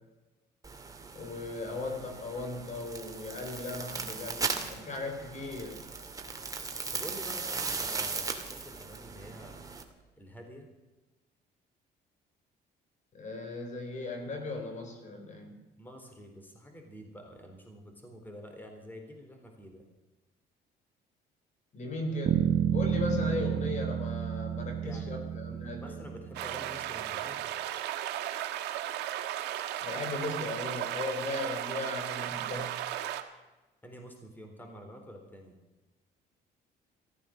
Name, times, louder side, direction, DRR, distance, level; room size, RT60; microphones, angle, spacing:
sound 1, 0.6-9.8, right 4 dB, 20° right, 2.2 m, -38 dB
voice 1, 1.1-5.9 13.1-15.6 21.7-26.0 29.8-32.7, left 2 dB, 45° left, 4 dB, 3.9 m, -37 dB
voice 2, 6.9-10.7 15.8-19.8 24.8-27.5 33.8-35.6, equal, 10° left, 3 dB, 3.9 m, -48 dB
sound 2, 22.3-26.6, right 9 dB, 60° right, 1.1 m, -30 dB
sound 3, 26.3-33.2, right 12 dB, 85° right, 1.5 m, -35 dB
15.0 x 14.0 x 6.5 m, 1.1 s
cardioid pair, 110°, 17 cm